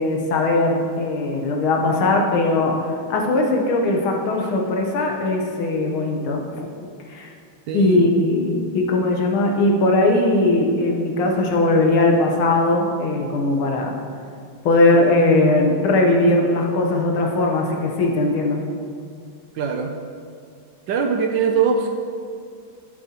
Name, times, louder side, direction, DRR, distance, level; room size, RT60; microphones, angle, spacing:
voice 1, 0.0-2.7 3.1-6.7 7.1-7.3 7.7-14.0 14.6-18.6, left 2 dB, 75° left, 1 dB, 1.8 m, -19 dB
voice 2, 7.7-8.1 19.5-19.9 20.9-21.9, right 6 dB, 70° right, 4 dB, 1.2 m, -21 dB
12.0 x 7.1 x 2.9 m, 2.2 s
omnidirectional pair, 2.3 m